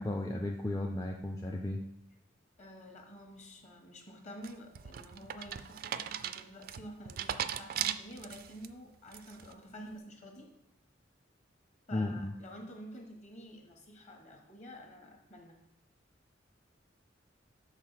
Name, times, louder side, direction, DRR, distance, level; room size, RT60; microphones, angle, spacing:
voice 1, 0.0-1.8 11.9-12.3, left 1 dB, 15° left, 1 dB, 0.4 m, -34 dB
voice 2, 2.6-10.5 11.9-15.6, equal, 40° left, 2 dB, 1.3 m, -49 dB
sound 1, 4.4-8.7 9.1-9.5, right 10 dB, 50° right, 0.3 m, -38 dB
6.5 x 4.0 x 5.7 m, 0.84 s
head